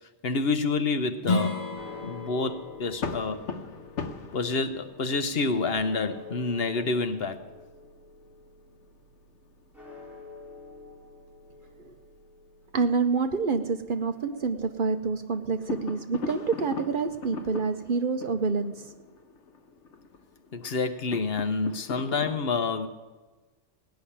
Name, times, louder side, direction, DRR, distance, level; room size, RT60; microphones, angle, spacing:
voice 1, 0.2-1.6 2.0-3.4 4.3-7.4 20.5-22.9, left 4 dB, 60° left, 9 dB, 1.1 m, -28 dB
Strum, 1.2-6.4, left 3 dB, 35° left, 1.5 m, -35 dB
sound 1, 1.8-16.0, left 3 dB, ahead, 3.7 m, -49 dB
sound 2, 2.7-12.0 12.3-12.4 12.7-12.8 13.6-14.7 15.0-22.3, left 4 dB, 80° left, 1.3 m, -41 dB
voice 2, 12.7-18.9, right 4 dB, 50° right, 8 dB, 0.9 m, -27 dB
18.0 x 6.3 x 10.0 m, 1.2 s
omnidirectional pair, 1.2 m